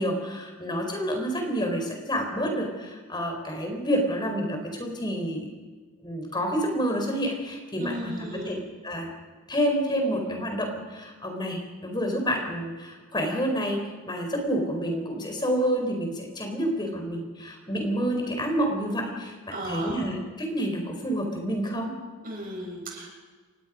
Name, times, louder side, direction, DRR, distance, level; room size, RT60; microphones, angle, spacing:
voice 1, 0.0-5.4 6.0-9.1 9.5-19.3 19.6-21.9, equal, 20° left, 3 dB, 4.6 m, -28 dB
voice 2, 7.8-8.6 19.5-20.1 22.2-23.1, right 1 dB, 40° right, -1 dB, 7.6 m, -35 dB
29.5 x 16.5 x 5.2 m, 1.4 s
head